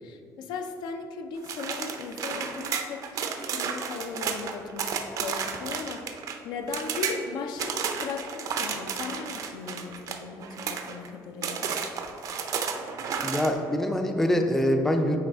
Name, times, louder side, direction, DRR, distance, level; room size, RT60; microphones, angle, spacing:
voice 1, 0.0-4.9 5.2-11.7, left 4 dB, 70° left, 6 dB, 0.5 m, -37 dB
sound 1, 1.4-6.4 6.7-7.2 7.6-11.1 11.4-13.5, right 6 dB, 50° right, 0.5 m, -32 dB
voice 2, 13.2-15.2, equal, 5° left, 4 dB, 0.4 m, -24 dB
9.3 x 3.3 x 3.5 m, 2.7 s
cardioid pair, 130°, 7 cm